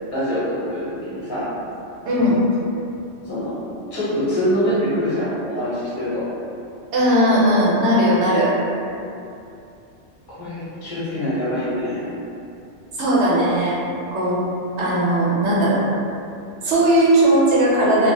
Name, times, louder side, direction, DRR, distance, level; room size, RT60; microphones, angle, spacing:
voice 1, 0.1-1.5 3.2-3.6 3.9-6.3 10.4-12.0, equal, 20° left, -11 dB, 0.8 m, -24 dB
voice 2, 2.0-2.4 6.9-8.5 13.0-13.8 14.1-14.4 14.8-15.8 16.6-18.1, right 1 dB, 70° right, -7 dB, 0.9 m, -17 dB
2.2 x 2.0 x 2.8 m, 2.6 s
omnidirectional pair, 1.3 m